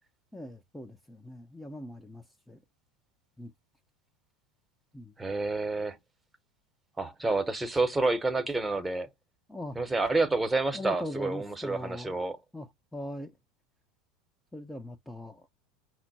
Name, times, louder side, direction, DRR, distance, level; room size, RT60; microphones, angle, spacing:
voice 1, 0.3-2.6 3.4-3.5 4.9-5.1 9.5-9.8 10.7-12.2 12.5-13.3 14.5-15.5, left 1 dB, 5° left, 0.7 m, -40 dB
voice 2, 5.2-6.0 7.0-9.1 9.7-12.4, right 3 dB, 10° right, 1.1 m, -29 dB
5.9 x 2.1 x 4.2 m
figure-of-eight pair, 75°, 0 cm